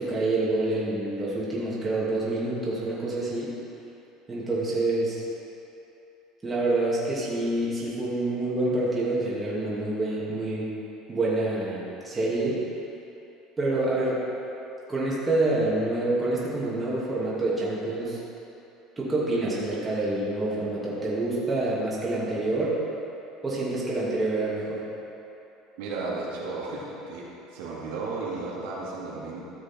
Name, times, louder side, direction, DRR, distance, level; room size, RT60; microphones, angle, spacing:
voice 1, 0.0-3.6 4.3-5.2 6.4-10.7 11.1-12.6 13.6-14.2 14.9-18.2 19.0-22.7 23.4-24.8, right 2 dB, 15° right, -7 dB, 2.5 m, -27 dB
voice 2, 25.8-27.2 27.5-29.4, right 3 dB, 85° right, -6 dB, 2.3 m, -34 dB
13.5 x 6.7 x 4.5 m, 2.9 s
cardioid pair, 140°, 0 cm